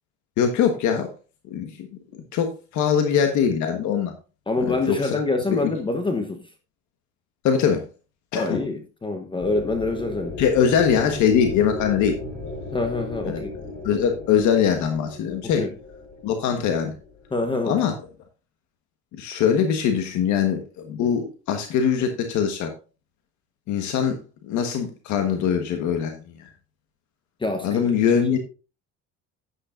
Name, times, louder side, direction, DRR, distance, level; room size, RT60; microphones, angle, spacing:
voice 1, 0.4-1.1 1.5-1.9 2.1-4.1 4.6-5.2 5.5-5.7 7.4-7.8 8.3-8.6 10.4-12.2 13.2-13.4 13.8-15.6 16.2-16.9 17.6-17.9 19.2-22.7 23.7-24.2 24.4-26.5 27.6-28.4, left 7 dB, 70° left, 1.4 m, -22 dB
voice 2, 4.5-6.4 8.3-10.4 12.7-13.5 15.4-15.7 17.3-17.8 27.4-27.8 28.3-28.4, left 3 dB, 15° left, 1.0 m, -26 dB
sound 1, 9.4-17.5, left 3 dB, 35° left, 4.2 m, -35 dB
10.5 x 9.8 x 2.5 m
cardioid pair, 120°, 30 cm